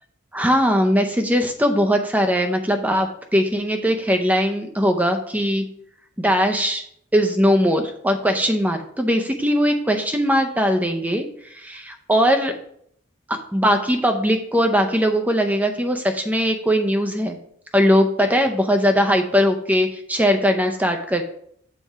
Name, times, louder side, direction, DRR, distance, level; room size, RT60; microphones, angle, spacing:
voice 1, 0.3-5.6 6.2-6.8 7.1-12.5 13.5-17.4 17.7-21.2, equal, 5° right, 5 dB, 0.6 m, -20 dB
7.3 x 4.2 x 4.7 m, 0.68 s
head